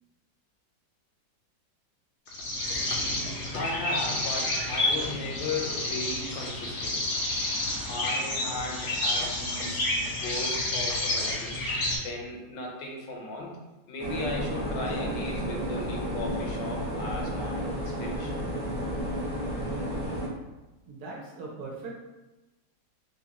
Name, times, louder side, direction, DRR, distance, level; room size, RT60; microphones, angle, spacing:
sound 1, 2.3-12.0, left 1 dB, 60° left, 0.8 m, -30 dB
voice 1, 3.5-7.1 7.9-11.6 12.0-13.6 13.9-18.5, left 2 dB, 85° left, -1 dB, 1.5 m, -36 dB
sound 2, 14.0-20.3, equal, 10° right, 0.8 m, -32 dB
voice 2, 20.9-21.9, right 3 dB, 70° right, -2 dB, 1.0 m, -39 dB
3.8 x 2.6 x 2.8 m, 1.1 s
omnidirectional pair, 2.0 m